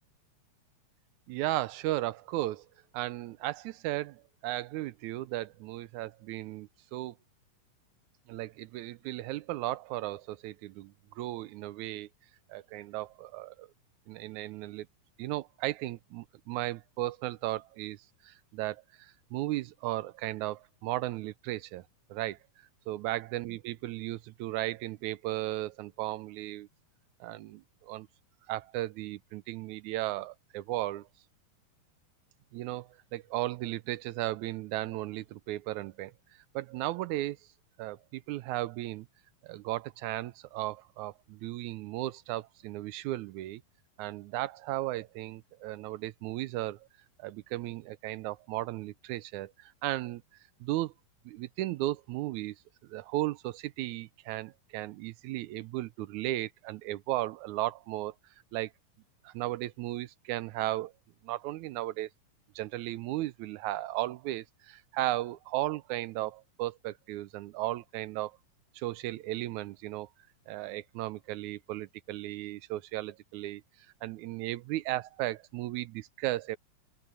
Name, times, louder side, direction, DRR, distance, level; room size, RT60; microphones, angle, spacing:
voice 1, 1.3-2.7 2.9-7.2 8.3-12.1 12.5-13.7 14.1-14.9 15.2-18.0 18.2-21.8 22.1-22.4 22.9-26.7 27.2-28.1 28.5-31.1 32.5-36.1 36.6-37.4 37.8-39.1 39.4-43.6 44.0-46.9 47.2-50.2 50.6-50.9 51.3-52.6 52.9-58.1 58.5-58.7 59.2-60.9 61.2-62.1 62.6-68.4 68.7-70.1 70.5-73.6 74.0-76.6, right 16 dB, 80° right, 1.8 m, -35 dB
open air
omnidirectional pair, 3.9 m